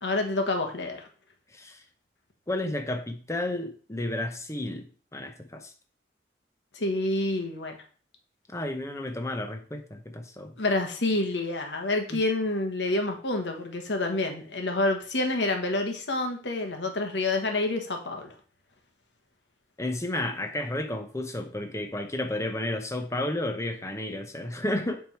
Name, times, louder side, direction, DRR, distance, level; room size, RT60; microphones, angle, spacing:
voice 1, 0.0-1.1 6.7-7.8 10.6-18.3, left 2 dB, 85° left, 4 dB, 1.3 m, -28 dB
voice 2, 1.5-1.8 2.5-5.7 8.5-10.6 12.1-12.2 19.8-25.0, left 1 dB, 15° left, 5 dB, 0.8 m, -32 dB
7.4 x 3.6 x 4.5 m, 0.42 s
head